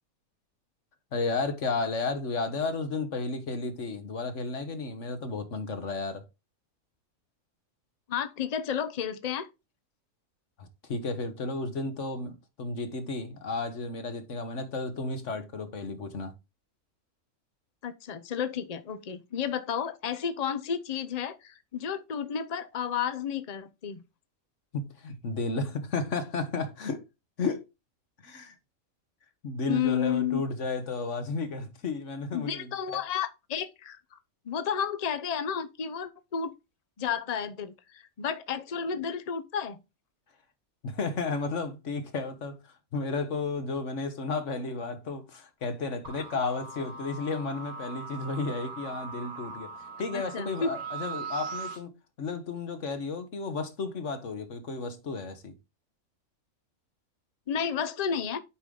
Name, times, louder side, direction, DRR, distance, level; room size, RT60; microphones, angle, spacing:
voice 1, 1.1-6.2 10.6-16.3 24.7-27.0 27.4-27.7 28.2-28.5 29.4-33.0 40.8-49.7 50.0-51.9 52.2-55.5, left 3 dB, 55° left, 1.5 m, -33 dB
voice 2, 8.1-9.5 17.8-24.0 29.7-30.4 32.3-34.2 34.4-36.5 37.0-39.8 50.1-50.7 57.5-58.4, left 8 dB, 40° left, 0.6 m, -32 dB
sound 1, 46.0-51.8, right 5 dB, 75° right, 2.8 m, -40 dB
8.7 x 5.0 x 3.9 m
omnidirectional pair, 1.5 m